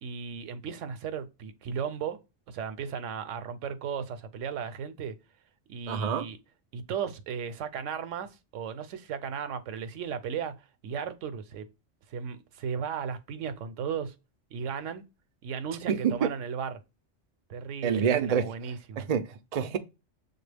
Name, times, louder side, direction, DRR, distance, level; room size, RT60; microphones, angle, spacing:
voice 1, 0.0-2.2 2.5-5.2 5.7-6.4 6.7-11.7 12.1-14.1 14.5-15.1 15.4-16.8 17.5-19.1, right 7 dB, 80° right, 1.0 m, -35 dB
voice 2, 5.9-6.3 15.9-16.3 17.8-18.4 19.0-19.8, right 7 dB, 60° right, 0.4 m, -27 dB
6.8 x 2.3 x 3.3 m
omnidirectional pair, 1.3 m